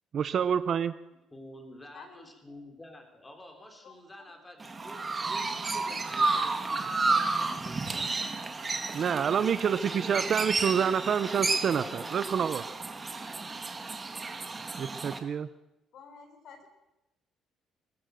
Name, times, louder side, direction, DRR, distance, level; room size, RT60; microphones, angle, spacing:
voice 1, 0.1-0.9 8.9-12.6 14.8-15.5, right 7 dB, 35° right, 13 dB, 0.7 m, -27 dB
voice 2, 1.3-8.2 9.1-10.3 11.4-12.4, left 1 dB, 10° left, 4 dB, 3.6 m, -49 dB
voice 3, 1.9-2.3 3.8-4.3 15.9-16.7, left 5 dB, 50° left, 7 dB, 4.1 m, -51 dB
Chirp tweet, 4.6-15.2, right 3 dB, 15° right, 1.6 m, -32 dB
21.5 x 20.5 x 6.5 m, 0.96 s
cardioid pair, 170°, 0 cm